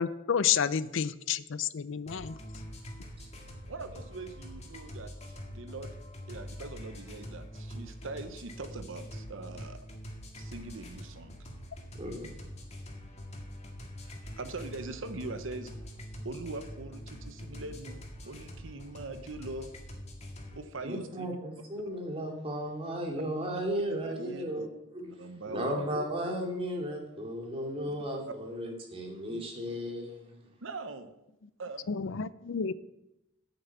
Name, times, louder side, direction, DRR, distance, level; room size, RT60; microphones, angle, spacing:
voice 1, 0.0-2.4 31.9-32.7, left 7 dB, 65° left, 17 dB, 0.5 m, -30 dB
sound 1, 2.1-20.6, equal, 35° left, 2.0 m, -44 dB
voice 2, 3.7-5.9 6.3-9.8 10.4-11.4 14.0-15.7 16.2-19.7 20.5-21.4 23.9-24.7 25.0-25.7 29.3-29.4 30.6-31.1 31.6-31.9, right 3 dB, 70° right, 9 dB, 0.9 m, -42 dB
voice 3, 12.0-12.3 20.8-24.7 24.9-25.1 25.5-30.4, equal, 30° right, 0 dB, 2.5 m, -35 dB
9.4 x 6.8 x 8.3 m, 0.91 s
head